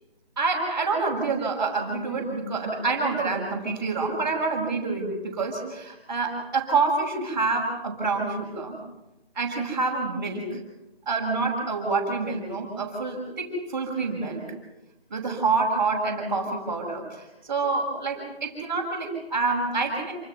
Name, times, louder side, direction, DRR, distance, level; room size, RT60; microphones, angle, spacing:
voice 1, 0.4-8.8 9.3-10.6 11.0-14.5 15.1-20.1, right 3 dB, 20° right, -7 dB, 6.4 m, -27 dB
28.0 x 26.5 x 5.8 m, 0.97 s
figure-of-eight pair, 175°, 31 cm